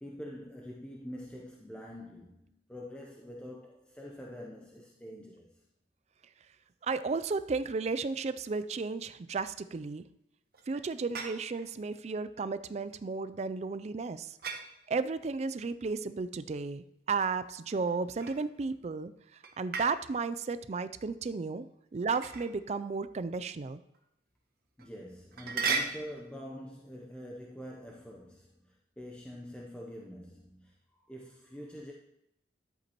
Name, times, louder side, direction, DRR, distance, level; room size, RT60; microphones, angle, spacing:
voice 1, 0.0-5.7 24.8-31.9, equal, 5° left, -2 dB, 0.7 m, -45 dB
voice 2, 6.8-10.0 10.7-14.4 14.9-19.1 19.6-21.7 21.9-23.8, right 4 dB, 40° right, 13 dB, 0.4 m, -33 dB
sound 1, 10.5-11.7 14.4-14.7 17.7-18.7 19.4-20.0 22.1-22.5 23.3-23.4 23.9-24.0 24.8-24.9 25.3-26.2, right 5 dB, 60° right, 1.0 m, -35 dB
11.5 x 7.9 x 3.0 m, 0.80 s
head